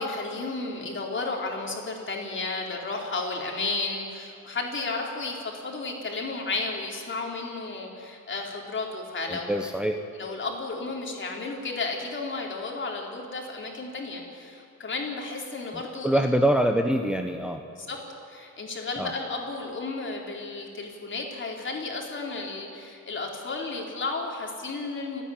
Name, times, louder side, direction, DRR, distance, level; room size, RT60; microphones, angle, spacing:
voice 1, 0.0-9.6 10.1-16.2 17.7-18.0 18.3-25.2, left 3 dB, 40° left, 0 dB, 4.3 m, -33 dB
voice 2, 9.3-10.0 15.7-17.6 19.0-19.1, right 1 dB, 5° right, 4 dB, 1.1 m, -25 dB
29.5 x 10.0 x 9.3 m, 2.6 s
cardioid pair, 90°, 30 cm